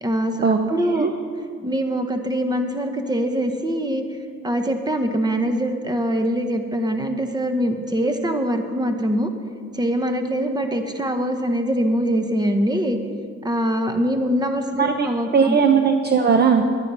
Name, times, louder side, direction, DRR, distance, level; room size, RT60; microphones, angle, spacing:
voice 1, 0.0-0.4 0.7-1.1 1.6-4.0 4.4-9.3 9.7-13.0 13.4-15.6, equal, 15° right, 6 dB, 1.1 m, -23 dB
voice 2, 15.3-16.6, right 6 dB, 35° right, 5 dB, 0.7 m, -17 dB
10.5 x 9.9 x 5.5 m, 2.1 s
cardioid pair, 90°, 30 cm